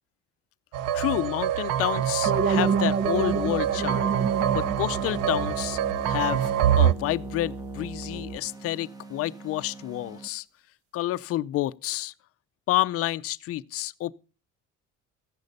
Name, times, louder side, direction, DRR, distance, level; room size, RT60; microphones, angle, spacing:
sound 1, 0.7-6.9, right 10 dB, 85° right, 0.6 m, -26 dB
voice 1, 0.9-4.1 4.5-5.8 6.1-6.5 6.8-10.4 10.9-12.1 12.7-14.1, left 15 dB, 50° left, 0.6 m, -29 dB
sound 2, 2.3-7.2, right 5 dB, 50° right, 1.5 m, -29 dB
sound 3, 3.2-10.3, right 2 dB, 10° right, 1.0 m, -38 dB
14.5 x 11.0 x 5.2 m
cardioid pair, 175°, 30 cm